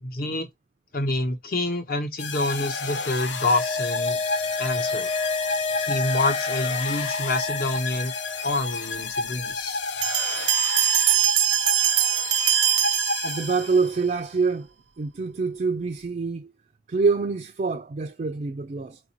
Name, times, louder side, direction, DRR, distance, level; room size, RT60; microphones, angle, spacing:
voice 1, 0.0-0.5 0.9-4.2 4.6-5.1 5.8-8.1 8.4-9.8, left 2 dB, 55° left, 0.9 m, -27 dB
sound 1, 2.2-14.0, left 4 dB, 80° left, 0.6 m, -31 dB
sound 2, 3.2-8.7 8.9-9.0, left 4 dB, 35° left, 0.3 m, -30 dB
Bell, 10.0-13.8, right 11 dB, 90° right, 0.6 m, -22 dB
voice 2, 13.2-14.7 15.0-16.5 16.9-19.0, right 4 dB, 45° right, 0.4 m, -25 dB
4.1 x 2.6 x 2.9 m
head